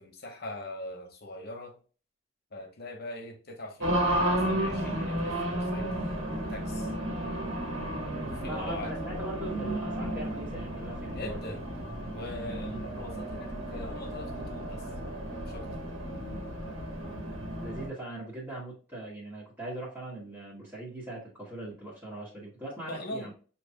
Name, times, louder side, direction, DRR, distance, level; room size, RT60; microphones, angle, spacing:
voice 1, 0.0-1.8 2.5-5.9 6.4-6.9 8.2-9.2 11.1-11.6 12.1-14.9 15.4-15.7 22.9-23.3, left 1 dB, 50° left, 4 dB, 1.0 m, -41 dB
Race car auto racing, 3.8-17.9, right 1 dB, 85° right, 1.5 m, -33 dB
voice 2, 8.4-11.4 12.6-12.8 17.4-23.3, right 1 dB, 10° right, -10 dB, 1.4 m, -40 dB
6.9 x 2.9 x 2.2 m, 0.38 s
head